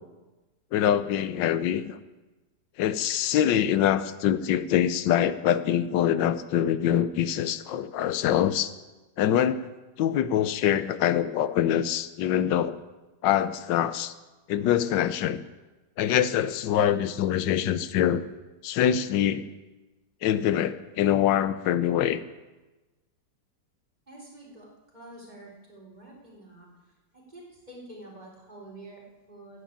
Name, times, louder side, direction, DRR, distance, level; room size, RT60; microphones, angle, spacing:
voice 1, 0.7-2.0 2.8-8.7 9.2-9.7 10.0-12.8 13.2-14.1 14.5-15.4 16.0-18.2 18.6-19.5 20.2-22.2, left 10 dB, 85° left, 13 dB, 1.4 m, -24 dB
voice 2, 24.1-29.6, right 1 dB, 25° right, -4 dB, 3.8 m, -48 dB
13.0 x 8.5 x 8.7 m, 1.2 s
omnidirectional pair, 1.9 m